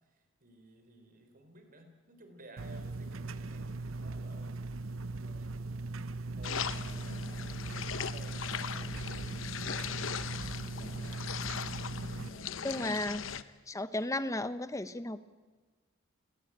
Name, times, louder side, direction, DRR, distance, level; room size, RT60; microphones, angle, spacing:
voice 1, 0.0-4.6 5.1-5.8 6.4-11.4 11.9-13.1, right 2 dB, 45° right, 6 dB, 4.1 m, -56 dB
sound 1, 2.6-12.3, right 3 dB, 80° right, 0.8 m, -39 dB
sound 2, 6.4-13.4, left 7 dB, 75° left, 1.0 m, -39 dB
voice 2, 12.6-13.2 13.7-15.2, left 1 dB, 15° left, 13 dB, 1.0 m, -34 dB
29.0 x 18.5 x 8.8 m, 1.3 s
head